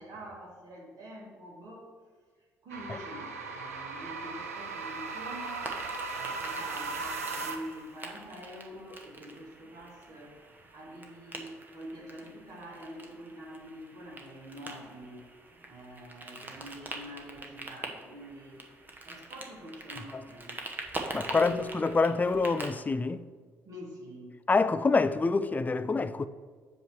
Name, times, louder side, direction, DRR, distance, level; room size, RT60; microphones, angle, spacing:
voice 1, 0.0-1.9 2.6-5.8 6.1-10.3 10.7-15.2 15.6-18.6 19.0-20.6 21.2-21.7 23.6-24.3, equal, 50° right, 1.9 m, -46 dB
sound 1, 2.7-7.8, right 4 dB, 85° right, 0.5 m, -37 dB
sound 2, 5.4-22.7, right 2 dB, 25° right, 1.0 m, -44 dB
voice 2, 21.1-23.3 24.5-26.3, left 4 dB, 20° left, 0.4 m, -26 dB
7.8 x 3.1 x 6.2 m
figure-of-eight pair, 50°, 8 cm